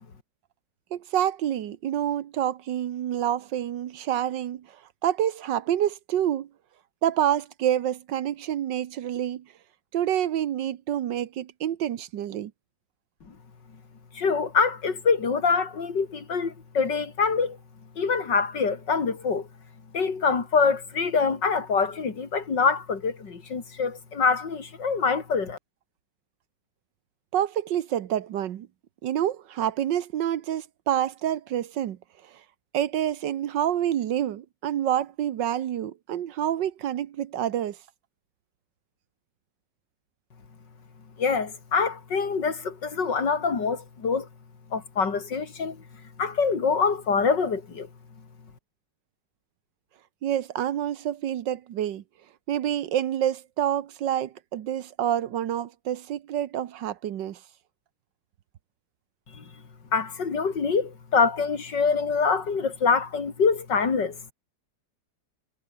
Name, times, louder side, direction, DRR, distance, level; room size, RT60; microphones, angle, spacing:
voice 1, 0.9-6.5 7.0-9.4 9.9-12.5 27.3-28.7 29.0-32.0 32.3-32.4 32.7-37.8 50.2-52.0 52.5-57.4, right 11 dB, 75° right, 1.6 m, -27 dB
voice 2, 14.1-17.6 18.0-19.5 19.9-25.6 41.2-44.3 44.7-45.8 46.2-47.9 59.3-59.4 59.9-64.2, left 5 dB, 65° left, 3.5 m, -25 dB
omnidirectional pair, 2.0 m